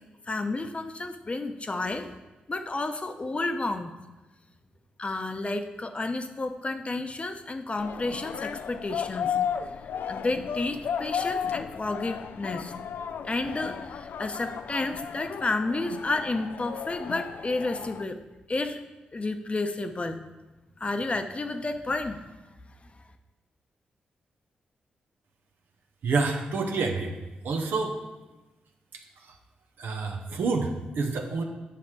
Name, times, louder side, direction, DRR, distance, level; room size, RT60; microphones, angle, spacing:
voice 1, 0.3-2.2 2.5-3.9 5.0-9.4 10.1-12.7 13.2-18.2 18.5-18.8 19.1-20.2 20.8-22.2, left 2 dB, 35° left, 7 dB, 0.8 m, -31 dB
sound 1, 7.8-18.0, left 7 dB, 70° left, 0.4 m, -34 dB
voice 2, 26.0-27.2 27.4-27.9 29.8-31.4, right 4 dB, 75° right, 3 dB, 1.0 m, -28 dB
8.5 x 5.9 x 4.8 m, 1.1 s
supercardioid pair, 45°, 3 cm